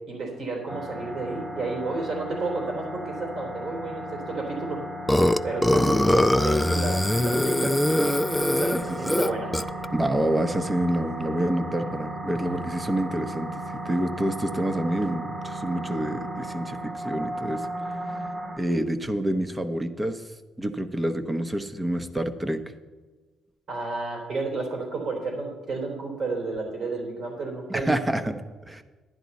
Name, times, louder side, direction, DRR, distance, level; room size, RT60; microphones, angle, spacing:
voice 1, 0.1-4.8 5.4-7.8 8.6-9.8 23.7-27.9, right 3 dB, 65° right, 0 dB, 3.2 m, -32 dB
sound 1, 0.7-18.6, right 1 dB, 40° right, 1.5 m, -35 dB
Burping eructation, 5.1-9.9, left 1 dB, 5° left, 0.4 m, -22 dB
voice 2, 5.8-6.2 8.7-9.2 9.9-20.2 20.6-22.6 27.7-28.8, right 1 dB, 15° right, 9 dB, 0.8 m, -28 dB
10.5 x 10.5 x 4.1 m, 1.3 s
cardioid pair, 90°, 0 cm